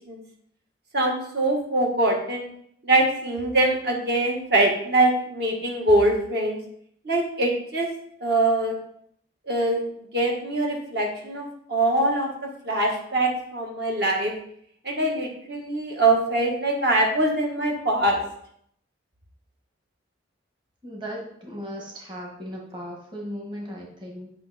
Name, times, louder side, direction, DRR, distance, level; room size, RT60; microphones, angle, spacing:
voice 1, 0.9-2.5 2.8-6.6 7.0-7.9 8.2-8.7 9.5-9.8 10.1-14.3 14.8-18.2, right 2 dB, 55° right, 0 dB, 1.6 m, -23 dB
voice 2, 20.8-24.3, equal, 25° right, -2 dB, 1.5 m, -37 dB
8.7 x 5.5 x 4.2 m, 0.68 s
head